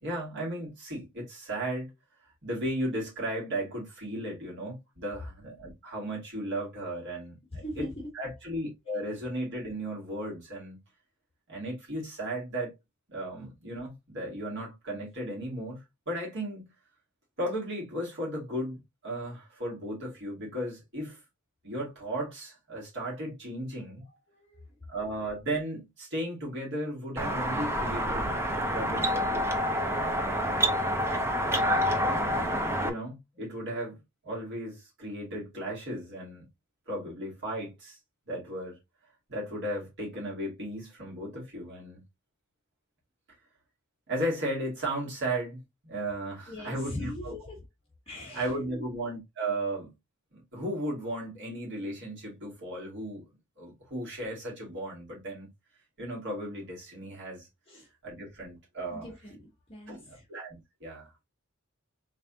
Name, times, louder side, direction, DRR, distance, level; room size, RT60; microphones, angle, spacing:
voice 1, 0.0-1.9 2.4-7.8 8.1-10.8 11.5-12.8 13.1-16.7 17.4-21.2 21.6-24.0 24.9-29.9 30.4-31.0 32.0-36.5 36.9-38.0 38.3-38.8 39.3-42.0 44.1-47.4 48.3-49.9 50.3-53.2 53.6-55.5 56.0-57.5 58.0-59.1 59.9-61.2, right 1 dB, 55° right, 2.3 m, -35 dB
voice 2, 7.6-8.1 24.0-24.8 46.5-47.6 48.1-49.0 57.7-57.9 58.9-60.3, left 1 dB, 25° left, 1.3 m, -41 dB
sound 1, 27.2-32.9, equal, 10° right, 0.6 m, -28 dB
4.0 x 3.4 x 2.7 m
head